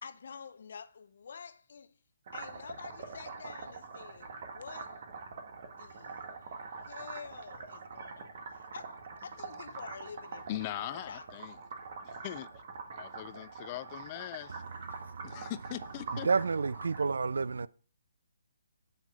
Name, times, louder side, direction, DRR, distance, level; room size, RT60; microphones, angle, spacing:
voice 1, 0.0-2.0 2.3-5.0 5.8-6.3 6.8-10.7 11.1-11.4, left 6 dB, 50° left, 0.8 m, -48 dB
sound 1, 2.3-17.1, right 4 dB, 45° right, 1.6 m, -45 dB
voice 2, 10.5-11.5 12.2-12.5 12.9-14.6 15.2-16.3, left 15 dB, 30° left, 0.4 m, -40 dB
voice 3, 16.2-17.7, right 4 dB, 60° right, 0.4 m, -29 dB
7.2 x 5.7 x 6.4 m
figure-of-eight pair, 140°, 0 cm